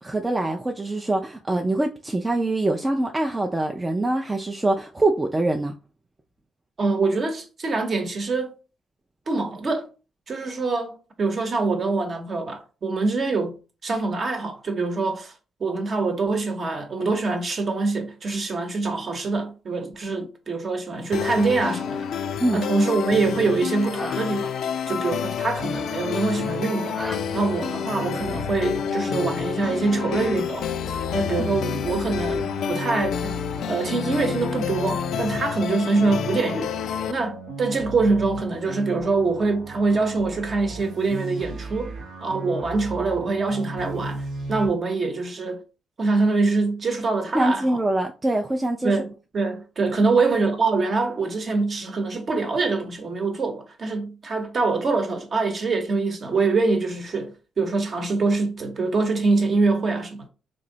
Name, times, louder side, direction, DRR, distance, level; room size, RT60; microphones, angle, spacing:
voice 1, 0.0-5.7 22.4-22.6 31.4-31.5 47.3-49.0, right 2 dB, 15° right, 0.4 m, -24 dB
voice 2, 6.8-8.5 9.3-9.9 10.3-13.5 13.8-15.3 15.6-22.2 22.5-24.5 24.9-27.0 27.3-30.7 31.1-33.3 33.7-36.7 37.1-41.9 42.2-45.6 46.0-47.8 48.8-49.1 49.3-60.2, right 3 dB, 45° right, 0.9 m, -24 dB
sound 1, 21.0-27.2, equal, ahead, 0.8 m, -43 dB
sound 2, 21.1-37.1, left 8 dB, 70° left, 0.3 m, -29 dB
sound 3, 25.6-44.7, right 2 dB, 75° right, 0.8 m, -36 dB
3.1 x 2.6 x 3.9 m
cardioid pair, 90°, 0 cm